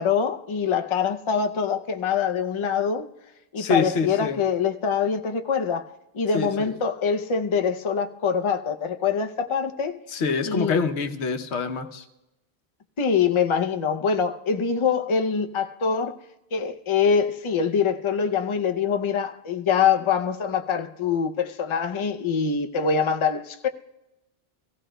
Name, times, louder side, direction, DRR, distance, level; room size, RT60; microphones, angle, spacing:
voice 1, 0.0-3.1 3.5-5.9 6.1-10.0 10.4-10.8 13.0-16.2 16.5-23.7, left 6 dB, 35° left, 0.6 m, -24 dB
voice 2, 3.6-4.4 6.3-6.7 10.1-12.0, left 4 dB, 85° left, 1.1 m, -26 dB
23.0 x 15.5 x 2.2 m
omnidirectional pair, 1.1 m